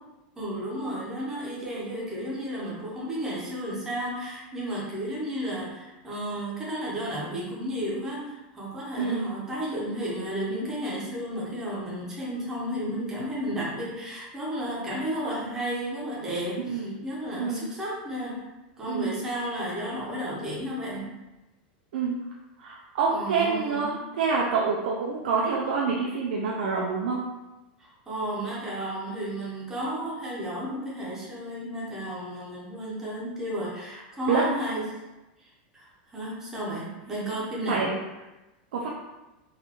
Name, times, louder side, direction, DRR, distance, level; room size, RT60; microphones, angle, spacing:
voice 1, 0.4-18.5 18.8-21.1 23.1-24.0 27.8-34.9 35.4-35.5 35.7-37.9, equal, 10° right, -6 dB, 0.8 m, -33 dB
voice 2, 16.7-17.0 17.4-17.6 18.9-19.1 21.9-22.2 22.6-27.2 34.3-34.4 37.7-38.0 38.7-38.9, right 5 dB, 90° right, -3 dB, 0.5 m, -27 dB
4.0 x 2.5 x 2.9 m, 1.0 s
supercardioid pair, 175°, 5 cm